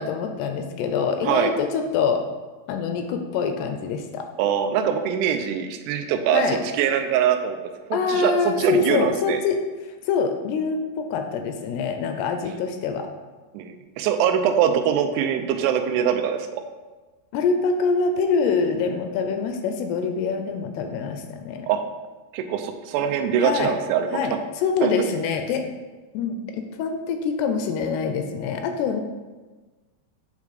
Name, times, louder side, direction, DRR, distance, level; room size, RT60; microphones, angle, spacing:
voice 1, 0.0-2.2 2.7-4.3 6.3-6.6 7.9-9.6 10.0-13.1 17.3-21.7 23.4-23.7 24.1-25.7 26.1-29.0, left 5 dB, 80° left, 6 dB, 2.5 m, -25 dB
voice 2, 4.4-7.6 7.9-9.4 13.5-16.6 21.7-21.8 22.3-24.1 24.8-24.9, right 8 dB, 85° right, 6 dB, 2.7 m, -23 dB
8.2 x 3.4 x 4.9 m, 1.3 s
omnidirectional pair, 4.8 m